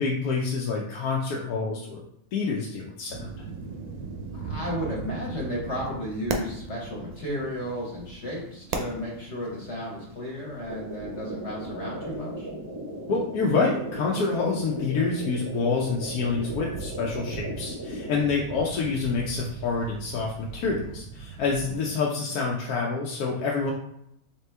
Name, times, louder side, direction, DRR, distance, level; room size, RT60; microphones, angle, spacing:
voice 1, 0.0-2.0 2.3-3.5 13.1-23.7, left 4 dB, 85° left, -2 dB, 1.1 m, -27 dB
sound 1, 3.1-21.7, right 4 dB, 85° right, 1.2 m, -40 dB
voice 2, 4.3-12.5 21.6-21.7, equal, 50° left, -3 dB, 1.2 m, -33 dB
sound 2, 10.7-18.2, right 1 dB, 25° right, 0.5 m, -37 dB
4.2 x 2.9 x 3.3 m, 0.75 s
omnidirectional pair, 1.6 m